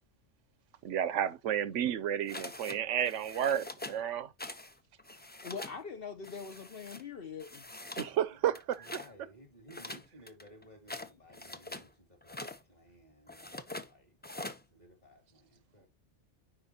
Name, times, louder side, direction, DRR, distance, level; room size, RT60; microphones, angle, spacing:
voice 1, 0.8-4.3 8.0-9.0, right 10 dB, 90° right, 1.1 m, -32 dB
sound 1, 2.3-2.8 3.0-4.0 4.4-4.7 5.0-5.8 6.2-7.0 7.4-8.1 8.5-9.1 9.7-11.9 12.2-12.6 13.3-13.9 14.2-14.6, left 2 dB, 10° left, 0.5 m, -44 dB
voice 2, 5.4-7.6, left 5 dB, 60° left, 0.9 m, -42 dB
voice 3, 8.8-14.1 14.7-15.9, equal, 35° left, 2.6 m, -57 dB
10.0 x 4.5 x 2.8 m
omnidirectional pair, 1.2 m